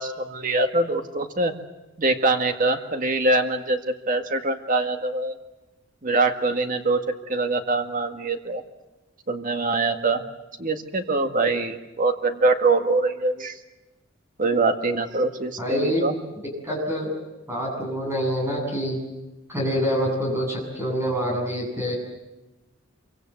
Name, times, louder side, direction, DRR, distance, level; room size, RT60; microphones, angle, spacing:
voice 1, 0.0-1.5 2.0-5.4 6.0-8.6 9.3-10.2 10.6-13.6 14.4-16.1, right 2 dB, 40° right, 6 dB, 1.9 m, -23 dB
voice 2, 15.6-16.0 16.6-17.1 17.5-19.0 19.5-22.0, equal, 10° right, 0 dB, 7.9 m, -26 dB
26.5 x 24.5 x 7.9 m, 1.0 s
head